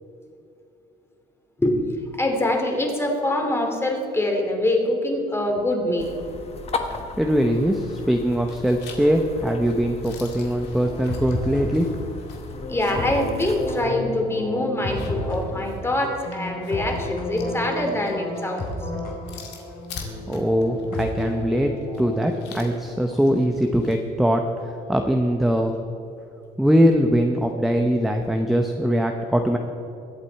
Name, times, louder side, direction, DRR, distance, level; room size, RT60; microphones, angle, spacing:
voice 1, 2.2-6.2 12.7-18.8 23.1-23.2, left 1 dB, 15° left, 2 dB, 2.6 m, -24 dB
sound 1, 6.0-13.9, left 4 dB, 35° left, 1.3 m, -37 dB
voice 2, 6.9-11.9 20.3-25.8 26.6-29.6, equal, ahead, 3 dB, 0.8 m, -22 dB
sound 2, 7.8-8.2 8.5-13.2 13.6-13.7 14.7-24.0, left 5 dB, 85° left, 2.2 m, -45 dB
sound 3, 10.8-22.7, left 1 dB, 55° left, 4.0 m, -32 dB
21.5 x 8.4 x 4.6 m, 2.7 s
cardioid pair, 110°, 17 cm